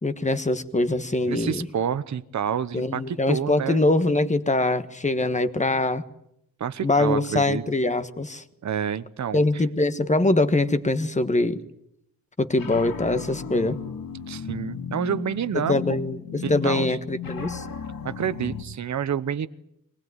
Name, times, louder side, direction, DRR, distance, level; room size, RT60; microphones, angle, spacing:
voice 1, 0.0-1.7 2.7-6.0 6.8-8.4 9.3-11.6 12.4-13.8 15.7-17.6, left 2 dB, 20° left, 11 dB, 1.4 m, -23 dB
voice 2, 1.3-3.8 6.6-7.6 8.6-9.6 14.3-16.0 16.4-17.0 18.0-19.5, right 8 dB, 55° right, 13 dB, 1.0 m, -28 dB
sound 1, 12.5-18.6, left 7 dB, 75° left, 2.9 m, -35 dB
23.5 x 19.5 x 9.5 m, 0.77 s
wide cardioid pair, 135°, 35 cm